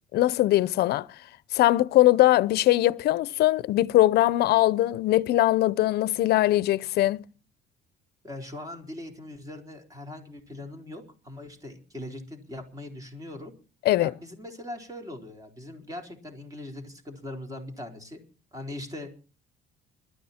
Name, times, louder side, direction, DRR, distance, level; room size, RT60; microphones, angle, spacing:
voice 1, 0.1-1.1 1.5-7.2 13.8-14.1, left 15 dB, 70° left, 0.7 m, -21 dB
voice 2, 8.2-13.5 14.0-18.2 18.5-19.2, left 1 dB, 20° right, 4.4 m, -40 dB
21.0 x 13.0 x 4.4 m
cardioid pair, 110°, 17 cm